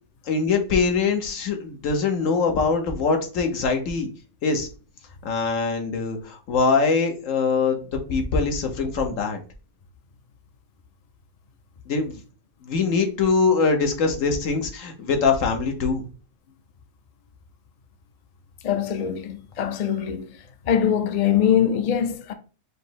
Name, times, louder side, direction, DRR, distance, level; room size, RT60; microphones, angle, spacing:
voice 1, 0.3-4.1 4.4-4.7 5.2-9.4 11.9-12.2 12.6-16.0, left 4 dB, 85° left, 1.3 m, -23 dB
voice 2, 18.6-20.3 20.6-22.3, left 9 dB, 55° left, 0.4 m, -22 dB
5.0 x 2.0 x 4.6 m
omnidirectional pair, 1.3 m